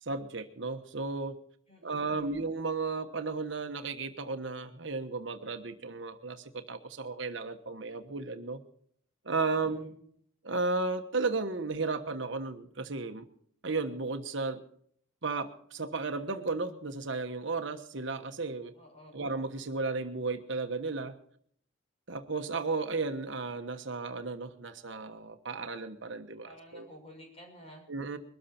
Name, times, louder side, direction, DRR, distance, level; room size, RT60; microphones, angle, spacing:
voice 1, 0.0-1.4 1.8-8.6 9.2-9.9 10.4-13.2 13.6-14.6 15.2-18.7 19.1-21.2 22.1-26.9 27.9-28.2, right 3 dB, 60° right, 6 dB, 1.3 m, -34 dB
voice 2, 1.7-2.4 9.5-10.0 18.7-19.3 26.4-27.9, equal, 30° left, 1 dB, 6.1 m, -53 dB
22.5 x 13.5 x 4.4 m, 0.62 s
head